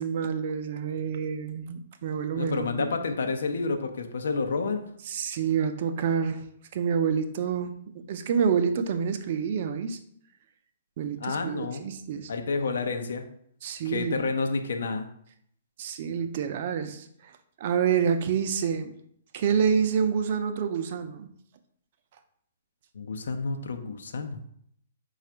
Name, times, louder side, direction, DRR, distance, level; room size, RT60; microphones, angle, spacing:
voice 1, 0.0-2.9 5.1-6.4 6.7-7.7 8.1-10.0 11.0-12.3 13.6-14.3 15.8-17.0 17.6-18.9 19.3-21.3, right 7 dB, 50° right, 8 dB, 0.5 m, -27 dB
voice 2, 2.3-4.8 11.2-11.8 12.3-13.2 13.8-15.1 22.9-24.5, left 4 dB, 70° left, 6 dB, 0.6 m, -29 dB
4.8 x 2.4 x 4.3 m, 0.67 s
figure-of-eight pair, 120°, 0 cm